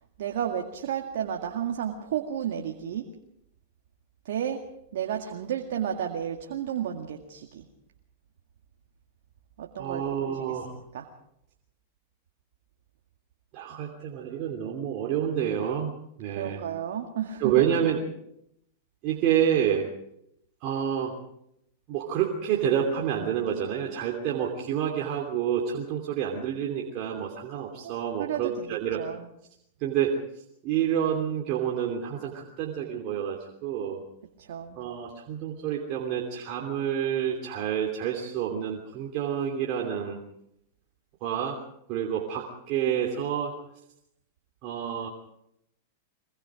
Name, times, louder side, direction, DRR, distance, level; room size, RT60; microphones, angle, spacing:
voice 1, 0.2-3.1 4.2-4.6 4.9-7.6 9.6-11.1 16.3-17.7 27.8-27.9 28.2-29.3 34.4-34.8, right 9 dB, 75° right, 3 dB, 2.1 m, -32 dB
voice 2, 9.8-10.7 13.5-16.6 17.4-18.0 19.0-19.9 20.6-21.2 21.9-29.0 29.8-34.0 34.8-40.2 41.2-41.6 41.9-43.5 44.6-45.1, right 9 dB, 45° right, 0 dB, 3.0 m, -28 dB
23.0 x 22.5 x 5.0 m, 0.76 s
hypercardioid pair, 125°, 0 cm